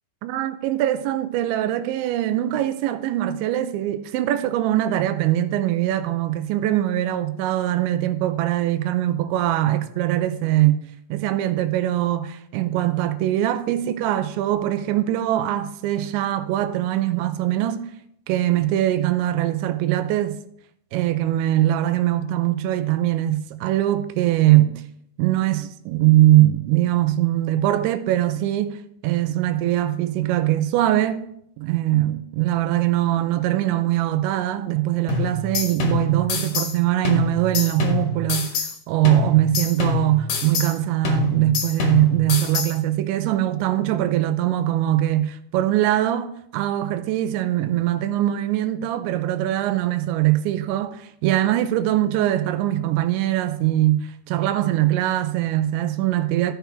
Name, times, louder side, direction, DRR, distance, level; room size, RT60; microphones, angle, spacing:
voice 1, 0.2-10.8 11.1-17.9 18.3-20.4 20.9-24.8 25.2-31.2 31.6-56.5, right 13 dB, 80° right, 2.8 m, -22 dB
sound 1, 35.1-36.8 37.0-38.8 39.0-40.8 41.0-42.8, left 4 dB, 65° left, 2.3 m, -26 dB
14.0 x 5.9 x 3.4 m
omnidirectional pair, 5.5 m